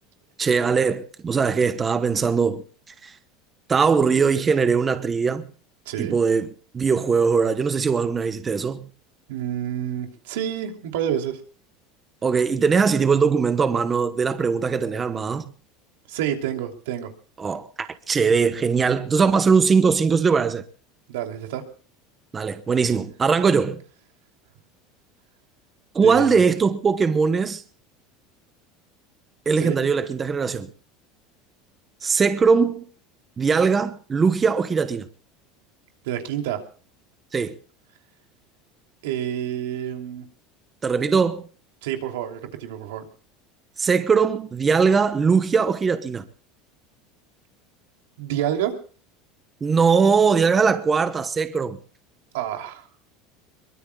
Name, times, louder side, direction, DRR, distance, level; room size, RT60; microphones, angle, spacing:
voice 1, 0.4-2.6 3.0-3.1 3.7-5.5 6.0-8.9 12.2-15.4 17.4-20.7 22.3-23.8 25.9-27.6 29.5-30.7 32.0-32.9 33.4-35.1 37.3-37.5 40.8-41.5 43.8-46.3 49.6-51.8, right 5 dB, 20° right, 1.0 m, -20 dB
voice 2, 5.8-6.2 9.3-11.4 16.1-17.1 21.1-21.6 26.0-26.4 29.6-29.8 36.0-36.6 39.0-40.3 41.8-43.1 48.2-48.8 52.3-52.9, right 10 dB, 90° right, 3.0 m, -28 dB
23.5 x 23.0 x 2.3 m
supercardioid pair, 155°, 0 cm